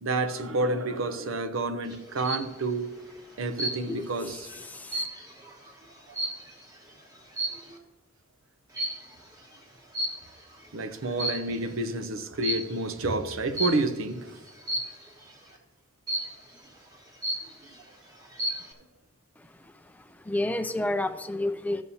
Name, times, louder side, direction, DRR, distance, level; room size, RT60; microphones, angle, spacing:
voice 1, 0.0-2.9 3.4-4.5 10.7-14.4, right 2 dB, 75° right, 0.7 m, -29 dB
sound 1, 1.9-2.5 3.6-4.1 4.5-6.7 7.3-7.7 8.7-9.1 9.9-10.5 11.0-11.7 12.4-12.8 13.6-14.0 14.7-15.1 16.1-16.5 16.9-17.0 17.2-17.8 18.2-18.7, right 1 dB, 20° right, 1.2 m, -32 dB
voice 2, 3.9-5.1 20.2-21.8, left 1 dB, 10° left, 0.4 m, -30 dB
14.0 x 7.1 x 2.7 m
head